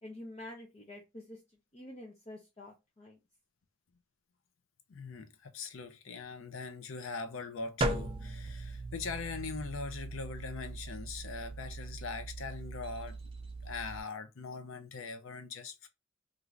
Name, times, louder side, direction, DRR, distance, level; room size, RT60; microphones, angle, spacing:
voice 1, 0.0-1.4 1.7-3.2, left 1 dB, 30° left, 0.5 m, -47 dB
voice 2, 4.9-13.2 13.6-15.9, left 4 dB, 80° left, 0.5 m, -41 dB
sound 1, 7.8-14.0, right 2 dB, 25° right, 0.4 m, -39 dB
2.5 x 2.4 x 3.1 m
head